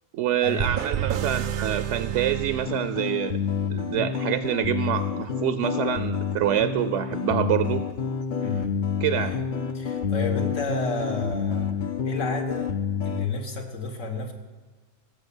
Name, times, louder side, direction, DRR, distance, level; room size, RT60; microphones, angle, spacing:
voice 1, 0.1-3.4 3.7-7.8 9.0-9.3, right 10 dB, 75° right, 12 dB, 0.9 m, -26 dB
sound 1, 0.6-3.4, right 9 dB, 60° right, 0.5 m, -30 dB
sound 2, 2.7-13.3, left 7 dB, 50° left, 0.7 m, -28 dB
voice 2, 8.4-8.8 9.1-9.5 9.7-11.7 12.1-12.7 13.0-14.3, left 3 dB, 85° left, 4 dB, 1.8 m, -31 dB
16.0 x 7.4 x 7.1 m, 1.4 s
omnidirectional pair, 1.3 m